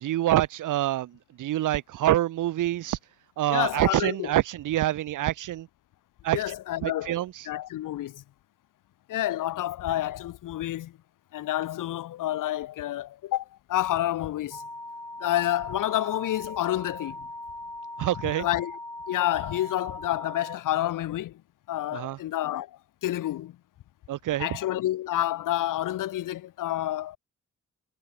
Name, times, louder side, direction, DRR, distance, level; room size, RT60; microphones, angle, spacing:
voice 1, 0.0-3.0 3.4-5.7 6.2-6.4 6.8-7.5 18.0-18.5 21.9-22.2 24.1-24.5, right 14 dB, 75° right, 0.5 m, -26 dB
voice 2, 3.5-4.3 6.3-7.2 7.5-8.2 9.1-10.9 11.3-14.6 15.2-17.3 18.3-18.8 19.1-21.4 21.7-22.7 23.0-23.6 24.4-27.2, left 13 dB, 80° left, 0.5 m, -29 dB
sound 1, 14.5-20.6, left 2 dB, 10° left, 0.8 m, -40 dB
cardioid pair, 60°, 31 cm